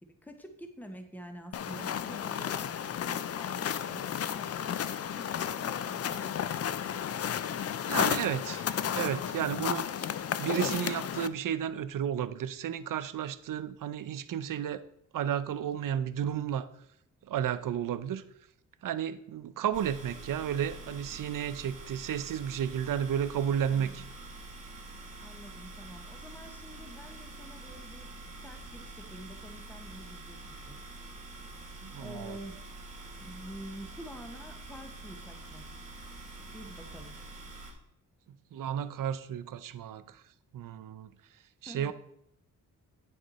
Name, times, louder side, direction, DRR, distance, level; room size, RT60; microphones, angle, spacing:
voice 1, 0.0-2.7 3.0-7.0 23.7-24.1 25.2-28.1 28.4-30.8 32.0-32.6 33.2-35.6 36.5-37.2 41.7-41.9, equal, 5° left, 6 dB, 0.9 m, -48 dB
sound 1, 1.5-11.3, left 9 dB, 50° left, 0.4 m, -33 dB
voice 2, 7.8-8.7 8.9-9.9 10.4-14.8 15.1-16.7 17.3-18.2 18.8-24.0 31.8-32.4 38.5-40.2 40.5-41.1 41.6-41.9, right 9 dB, 75° right, 13 dB, 0.6 m, -32 dB
sound 2, 19.7-37.7, right 2 dB, 25° right, 2.4 m, -46 dB
9.4 x 6.5 x 4.1 m, 0.75 s
wide cardioid pair, 130°, 33 cm